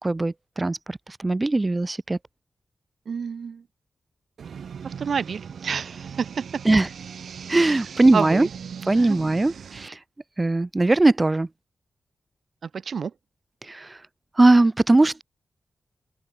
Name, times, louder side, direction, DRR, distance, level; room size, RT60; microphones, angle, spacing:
voice 1, 0.0-2.2 6.6-6.9 7.5-8.5 8.9-10.0 10.4-11.5 13.6-14.0 14.4-15.2, right 2 dB, 20° right, 0.9 m, -20 dB
voice 2, 3.1-3.6 4.8-6.4 7.6-7.8 8.1-8.5 8.9-9.2 12.8-13.1, right 6 dB, 65° right, 1.0 m, -29 dB
sound 1, 4.4-9.9, right 7 dB, 85° right, 2.3 m, -39 dB
wide cardioid pair, 135°, 0 cm